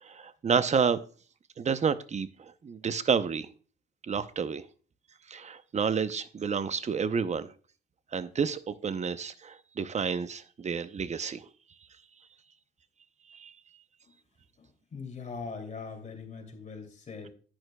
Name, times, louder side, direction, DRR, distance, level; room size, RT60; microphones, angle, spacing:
voice 1, 0.0-1.0 1.6-3.5 4.1-4.6 5.3-7.5 8.1-11.5 13.3-13.5, right 6 dB, 35° right, 13 dB, 0.7 m, -30 dB
voice 2, 14.6-17.3, left 4 dB, 35° left, 3 dB, 2.6 m, -41 dB
11.0 x 9.0 x 2.2 m, 0.40 s
cardioid pair, 90°, 20 cm